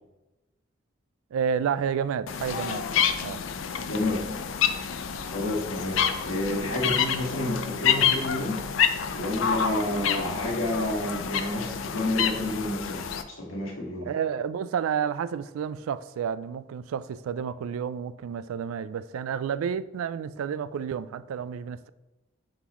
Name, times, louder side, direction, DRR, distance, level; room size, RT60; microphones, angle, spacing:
voice 1, 1.3-2.8 3.2-3.4 14.0-21.9, right 7 dB, 90° right, 0.3 m, -30 dB
sound 1, 2.3-13.2, left 8 dB, 70° left, 0.4 m, -28 dB
voice 2, 3.8-4.3 5.3-8.6 9.1-14.1, left 1 dB, 85° left, 1.6 m, -30 dB
9.5 x 4.0 x 3.0 m
head